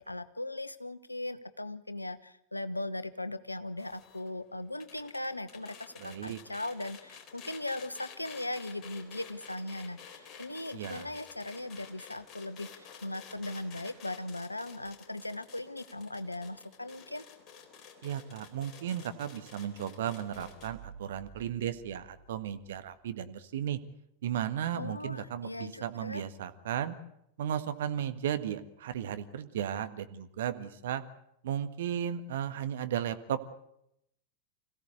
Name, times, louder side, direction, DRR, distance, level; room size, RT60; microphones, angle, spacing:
voice 1, 0.0-17.2 24.7-26.2, left 1 dB, 85° left, 14 dB, 1.1 m, -39 dB
sound 1, 3.8-20.7, left 7 dB, 35° left, 3.9 m, -52 dB
voice 2, 6.0-6.4 10.7-11.1 18.0-23.8 24.2-26.9 27.4-31.0 31.4-33.4, right 9 dB, 60° right, 9 dB, 1.6 m, -35 dB
sound 2, 20.3-22.9, right 6 dB, 5° right, 5.9 m, -52 dB
26.0 x 16.5 x 8.2 m, 0.78 s
figure-of-eight pair, 90°, 0 cm